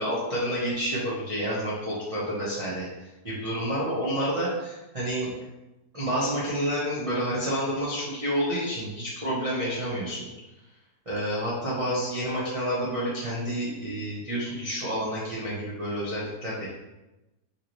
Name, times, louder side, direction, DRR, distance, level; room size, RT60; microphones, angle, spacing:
voice 1, 0.0-2.9 3.2-5.3 5.9-10.3 11.1-16.7, equal, 30° right, -9 dB, 0.7 m, -29 dB
5.7 x 3.0 x 3.0 m, 1.0 s
omnidirectional pair, 2.0 m